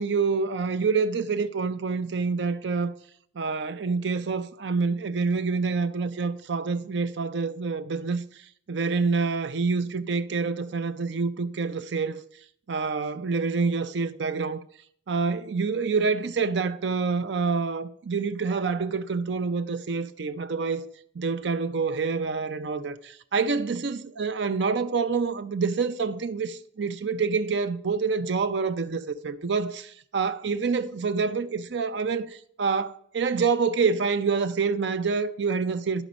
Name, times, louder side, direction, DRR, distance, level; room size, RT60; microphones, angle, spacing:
voice 1, 0.0-2.9 3.4-8.2 8.7-12.2 12.7-14.6 15.1-20.9 21.1-36.0, right 4 dB, 65° right, 0.5 m, -27 dB
11.0 x 5.1 x 5.1 m
head